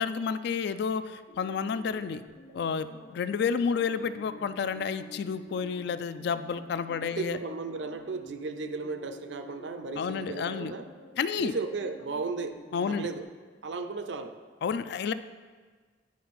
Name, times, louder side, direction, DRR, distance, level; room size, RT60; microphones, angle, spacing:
voice 1, 0.0-2.2 2.5-7.4 10.0-10.7 11.2-11.5 12.7-13.1 14.6-15.1, left 6 dB, 65° left, 12 dB, 0.3 m, -30 dB
sound 1, 1.3-13.2, left 1 dB, 85° left, 1.0 m, -50 dB
voice 2, 7.0-10.9 11.4-12.6 12.8-13.3 13.6-14.4, right 4 dB, 70° right, 8 dB, 0.5 m, -35 dB
9.4 x 4.7 x 4.2 m, 1.4 s
head